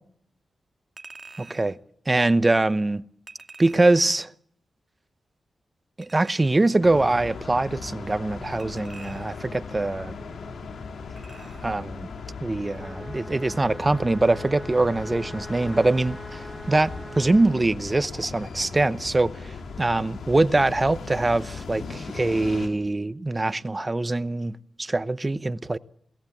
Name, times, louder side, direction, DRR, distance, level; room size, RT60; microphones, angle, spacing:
Chink clink, 1.0-1.7 3.3-4.2 6.0-6.8 8.6-9.6 11.2-11.8 12.2-12.3, right 4 dB, 45° right, 2.0 m, -47 dB
voice 1, 1.4-1.8 2.1-3.0 3.6-4.3 6.0-10.1 11.6-12.1 12.4-25.8, right 2 dB, 25° right, 0.8 m, -23 dB
sound 1, 6.8-22.7, left 4 dB, 80° left, 3.6 m, -38 dB
sound 2, 12.8-17.6, right 1 dB, 5° right, 1.4 m, -42 dB
23.0 x 17.0 x 7.3 m
cardioid pair, 65°, 0 cm